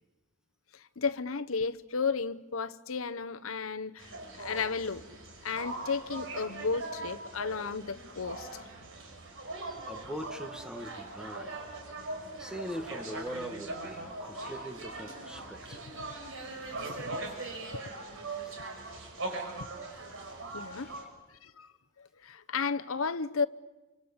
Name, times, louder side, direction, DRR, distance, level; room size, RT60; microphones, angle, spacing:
voice 1, 0.7-4.1 4.4-5.0 5.4-8.7 20.5-20.9 21.4-21.7 22.0-23.4, left 5 dB, 70° left, 0.9 m, -33 dB
sound 1, 4.0-21.0, right 2 dB, 65° right, 5.6 m, -41 dB
voice 2, 9.9-11.6 12.4-15.8 18.4-18.5 20.7-20.9, equal, 5° right, 1.8 m, -41 dB
29.0 x 25.5 x 7.2 m
head